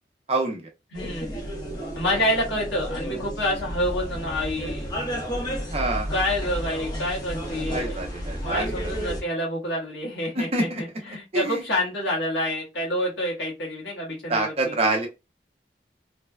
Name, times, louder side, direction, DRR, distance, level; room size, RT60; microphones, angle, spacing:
voice 1, 0.3-0.6 5.7-6.1 7.7-8.7 10.4-11.6 14.3-15.1, right 2 dB, 35° right, 2 dB, 0.7 m, -26 dB
voice 2, 0.9-1.3 1.9-4.9 6.1-8.0 8.4-14.7, left 1 dB, 80° left, -4 dB, 1.3 m, -28 dB
sound 1, 1.0-9.2, equal, 25° left, 0.8 m, -32 dB
3.2 x 2.2 x 2.2 m, 0.25 s
head